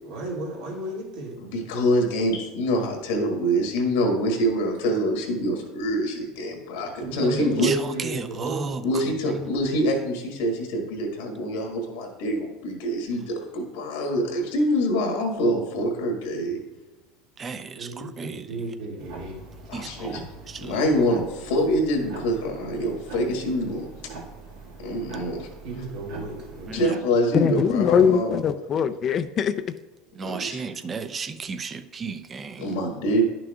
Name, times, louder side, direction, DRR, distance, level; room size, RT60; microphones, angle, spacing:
voice 1, 0.0-1.3 6.7-9.4 17.7-19.4 19.7-19.8 25.6-26.8, right 2 dB, 70° right, -2 dB, 2.4 m, -33 dB
voice 2, 1.4-7.7 8.8-16.6 19.7-20.2 20.6-23.9 24.8-25.5 26.7-28.3 30.2-30.6 32.6-33.2, equal, 90° left, 2 dB, 1.7 m, -25 dB
voice 3, 7.6-9.5 17.4-18.6 19.7-20.8 26.7-27.0 30.1-32.7, right 5 dB, 25° right, 11 dB, 0.5 m, -34 dB
sound 1, 19.0-26.8, right 3 dB, 85° right, 1.8 m, -43 dB
voice 4, 27.3-29.5, left 7 dB, 40° left, 10 dB, 0.4 m, -21 dB
11.0 x 6.0 x 2.4 m, 1.1 s
supercardioid pair, 115°, 0 cm